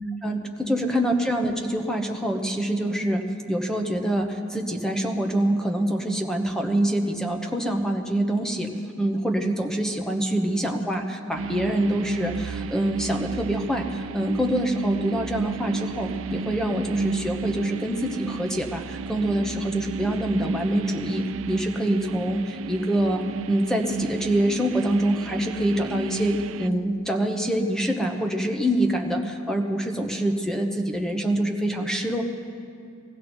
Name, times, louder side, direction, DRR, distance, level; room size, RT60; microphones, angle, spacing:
voice 1, 0.2-8.7 9.0-23.2 23.5-32.2, right 1 dB, 5° left, 3 dB, 1.0 m, -25 dB
sound 1, 11.3-26.7, right 4 dB, 65° right, 0.4 m, -33 dB
20.5 x 15.5 x 4.5 m, 2.4 s
head